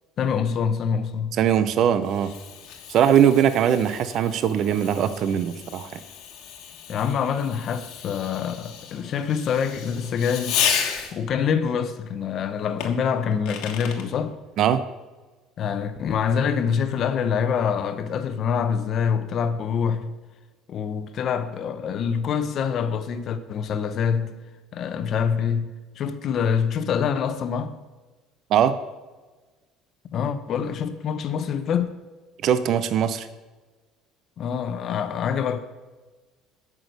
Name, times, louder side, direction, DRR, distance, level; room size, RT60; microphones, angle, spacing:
voice 1, 0.2-1.4 6.9-10.6 11.1-14.3 15.6-20.1 20.7-24.3 24.7-25.7 26.0-27.7 30.1-31.9 34.4-35.6, left 7 dB, 40° left, 0.8 m, -25 dB
Fireworks, 1.4-11.4 12.8-14.1, left 8 dB, 70° left, 1.4 m, -33 dB
voice 2, 1.4-2.3 2.9-6.0 14.6-14.8 28.5-28.7 32.4-33.3, right 9 dB, 50° right, 0.6 m, -21 dB
9.2 x 6.2 x 6.6 m
cardioid pair, 150°, 0 cm